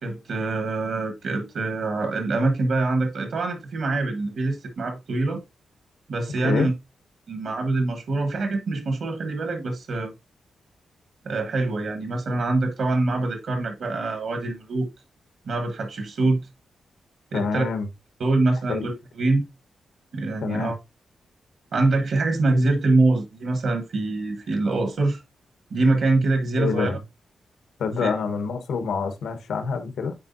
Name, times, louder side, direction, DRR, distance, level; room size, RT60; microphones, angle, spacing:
voice 1, 0.0-5.4 6.1-6.7 7.3-10.1 11.2-14.9 15.5-16.4 17.3-17.6 18.2-19.5 20.1-20.7 21.7-25.2 25.7-26.9 28.0-28.1, right 2 dB, 60° right, 1.3 m, -24 dB
voice 2, 17.3-17.9 18.7-18.9 20.4-20.7 26.6-27.0 27.8-30.1, left 5 dB, 85° left, 1.2 m, -26 dB
9.2 x 4.6 x 2.6 m
wide cardioid pair, 170°, 0 cm